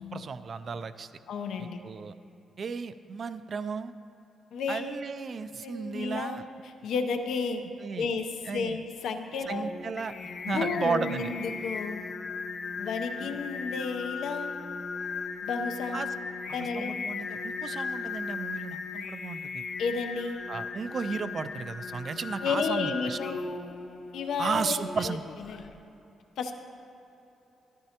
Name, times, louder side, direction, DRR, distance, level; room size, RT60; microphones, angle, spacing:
voice 1, 0.0-1.1 1.6-2.2 2.6-3.9 4.7-6.5 7.8-8.1 8.4-8.8 9.5-10.1 10.5-11.3 13.2-13.4 15.9-16.1 16.8-19.6 20.5-23.2 24.4-25.2, right 5 dB, 35° right, 12 dB, 0.3 m, -34 dB
voice 2, 1.3-1.8 4.5-4.9 5.6-7.6 8.0-9.7 10.4-12.0 12.8-14.5 15.4-16.0 16.5-17.0 19.8-20.4 22.4-23.4 24.1-25.6 26.4-26.5, left 4 dB, 70° left, 6 dB, 0.7 m, -32 dB
Singing, 9.5-25.7, left 5 dB, 40° left, 0.4 m, -37 dB
13.5 x 12.5 x 2.9 m, 3.0 s
cardioid pair, 165°, 0 cm